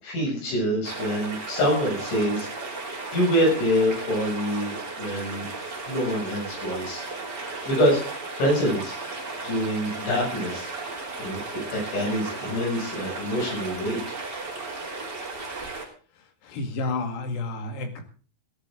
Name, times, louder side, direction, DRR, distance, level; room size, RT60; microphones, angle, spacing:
voice 1, 0.0-2.5 2.8-5.5 5.9-8.0 8.4-9.0 9.4-14.2, equal, 85° left, -1 dB, 9.4 m, -26 dB
sound 1, 0.8-15.9, right 3 dB, 25° right, 3.1 m, -35 dB
voice 2, 16.4-18.0, left 3 dB, 70° left, 5 dB, 4.0 m, -30 dB
17.5 x 13.0 x 3.8 m, 0.39 s
omnidirectional pair, 5.2 m